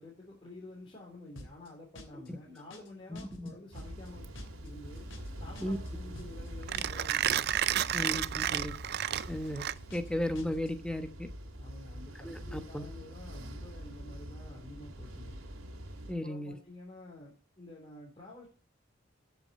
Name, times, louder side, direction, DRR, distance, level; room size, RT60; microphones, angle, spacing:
voice 1, 0.0-4.3 4.6-5.1 5.4-7.5 11.6-15.4 16.2-18.5, left 2 dB, 25° left, -4 dB, 3.4 m, -50 dB
sound 1, 1.4-1.7 2.0-2.3 2.6-2.9 3.2-3.5 3.8-4.1 4.4-4.7 5.0-5.3 5.6-5.9 6.2-6.5 6.8-7.1 7.4-7.7 8.0-8.3 8.6-8.9 9.2-9.5 9.8-10.1 10.4-10.7, left 1 dB, 65° left, 2.9 m, -49 dB
sound 2, 3.7-16.1, equal, 80° right, 2.7 m, -45 dB
Mechanisms, 4.1-10.2, right 11 dB, 50° right, 0.4 m, -32 dB
voice 2, 7.9-8.7 9.3-9.6 9.9-11.3 12.2-12.8 16.1-16.5, left 1 dB, 5° left, 8 dB, 1.1 m, -35 dB
14.0 x 6.9 x 4.3 m, 0.37 s
head